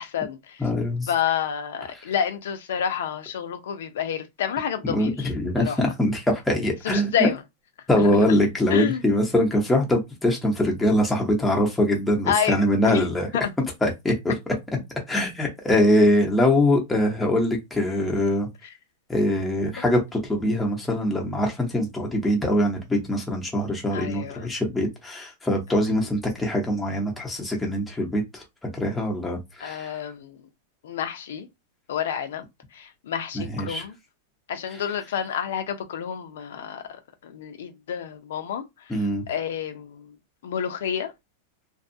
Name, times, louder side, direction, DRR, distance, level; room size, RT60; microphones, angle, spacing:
voice 1, 0.0-0.6 1.1-5.3 5.6-5.8 6.8-7.4 8.0-8.4 8.7-9.0 12.3-12.6 12.9-13.1 13.3-13.5 19.8-19.9 23.9-24.5 25.7-25.8 29.6-30.4 30.8-31.5 31.9-32.4 32.7-33.9 34.5-38.6 39.3-40.0 40.4-41.1, left 8 dB, 80° left, 0.6 m, -29 dB
voice 2, 0.6-1.1 4.8-7.3 7.9-13.3 13.8-14.5 15.1-18.5 19.1-28.4 28.7-29.9 33.3-33.8 38.9-39.2, left 1 dB, 5° left, 0.9 m, -23 dB
2.6 x 2.3 x 2.6 m
supercardioid pair, 150°, 0 cm